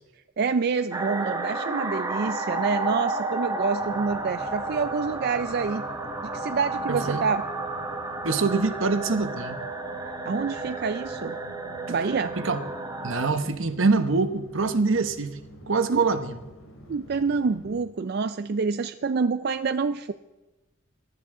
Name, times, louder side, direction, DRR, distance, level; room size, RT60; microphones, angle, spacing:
voice 1, 0.4-5.8 6.3-7.4 10.2-11.4 11.9-12.3 15.9-16.1 16.9-20.1, right 5 dB, 50° right, 11 dB, 0.4 m, -27 dB
sound 1, 0.9-13.3, right 2 dB, 20° right, 1.3 m, -32 dB
sound 2, 3.8-17.9, left 2 dB, 75° left, 2.7 m, -47 dB
voice 2, 6.9-7.3 8.2-9.6 12.4-12.6 13.0-15.4 15.7-16.3, right 4 dB, 70° right, 10 dB, 1.0 m, -24 dB
22.0 x 12.5 x 3.7 m, 1.1 s
head